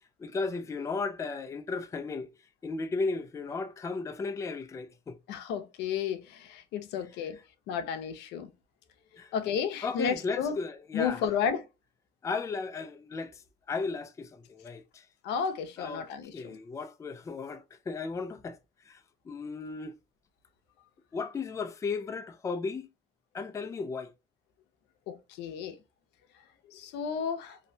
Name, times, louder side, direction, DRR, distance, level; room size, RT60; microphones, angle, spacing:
voice 1, 0.2-2.3 2.6-5.2 9.2-9.3 9.8-11.3 12.2-15.1 15.8-16.0 16.3-18.6 18.8-20.0 21.1-22.9 23.3-24.1, left 4 dB, 20° left, 0.3 m, -35 dB
voice 2, 5.3-7.4 7.7-8.5 9.3-10.5 10.9-11.7 15.2-16.6 25.1-25.8 26.7-27.6, left 7 dB, 85° left, 0.5 m, -32 dB
2.7 x 2.1 x 2.6 m
cardioid pair, 110°, 17 cm